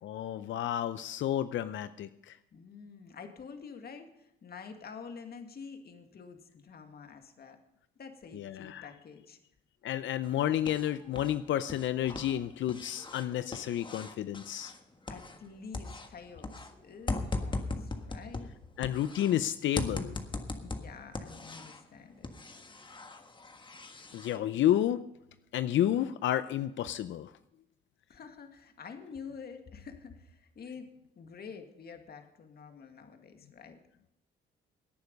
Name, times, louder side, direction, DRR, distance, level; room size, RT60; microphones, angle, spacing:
voice 1, 0.0-2.4 8.3-8.9 9.8-14.7 18.8-20.1 24.1-25.0 25.5-27.3, left 11 dB, 70° left, 13 dB, 0.6 m, -31 dB
voice 2, 2.5-7.6 8.0-9.4 15.1-18.5 20.6-22.3 26.0-26.1 28.1-30.9 31.2-33.8, left 5 dB, 50° left, 6 dB, 2.1 m, -48 dB
sound 1, 10.2-11.4 11.6-15.5 15.7-19.3 19.8-21.9 22.2-24.4, left 2 dB, 25° left, 1.5 m, -39 dB
17.5 x 9.6 x 5.3 m, 0.84 s
cardioid pair, 90°, 20 cm